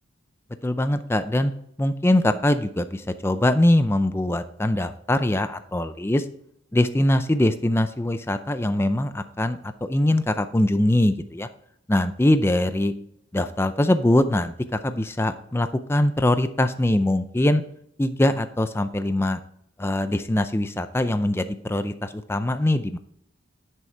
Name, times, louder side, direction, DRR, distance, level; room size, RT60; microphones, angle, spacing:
voice 1, 0.6-1.5 1.8-6.2 6.7-11.5 11.9-12.9 13.3-17.6 18.0-19.4 19.8-23.0, left 1 dB, 10° left, 10 dB, 0.4 m, -22 dB
10.5 x 6.4 x 4.5 m, 0.72 s
head